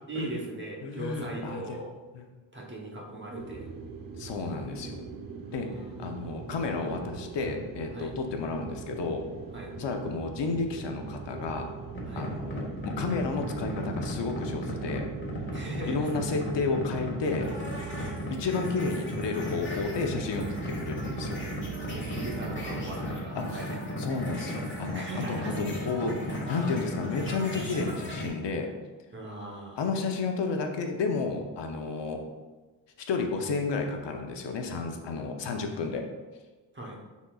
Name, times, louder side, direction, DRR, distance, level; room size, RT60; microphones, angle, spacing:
voice 1, 0.1-2.0 2.5-3.7 5.6-6.5 7.9-8.1 9.5-9.7 12.0-12.3 15.5-16.1 18.0-18.2 21.9-24.1 24.5-24.6 24.9-25.6 29.1-29.8 36.7-37.0, right 1 dB, 25° right, -1 dB, 1.0 m, -39 dB
voice 2, 0.8-1.8 2.1-2.2 4.2-5.0 5.5-5.7 6.0-9.2 9.8-11.7 12.1-15.1 15.9-17.5 17.7-17.9 18.3-21.4 23.4-23.6 24.0-25.0 25.3-26.2 26.5-28.7 29.8-32.2 33.1-36.1, left 4 dB, 75° left, 3 dB, 0.8 m, -32 dB
sound 1, 3.3-23.0, right 6 dB, 50° right, 0.7 m, -41 dB
sound 2, 12.0-28.3, left 1 dB, 25° left, 1.6 m, -35 dB
Wind instrument woodwind instrument, 21.5-28.0, right 2 dB, 70° right, 1.0 m, -48 dB
9.9 x 4.1 x 2.4 m, 1.3 s
wide cardioid pair, 140°, 43 cm